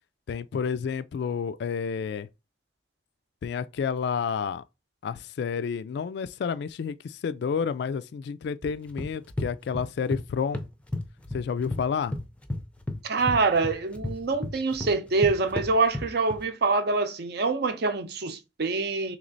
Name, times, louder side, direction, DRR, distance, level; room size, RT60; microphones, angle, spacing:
voice 1, 0.3-2.3 3.4-4.6 5.0-10.6 11.3-12.2, left 6 dB, 65° left, 0.3 m, -30 dB
sound 1, 8.6-10.2 10.5-11.8 12.1-16.4, left 1 dB, 5° left, 0.5 m, -33 dB
voice 2, 13.0-19.2, right 3 dB, 60° right, 0.6 m, -25 dB
3.3 x 3.1 x 3.9 m
head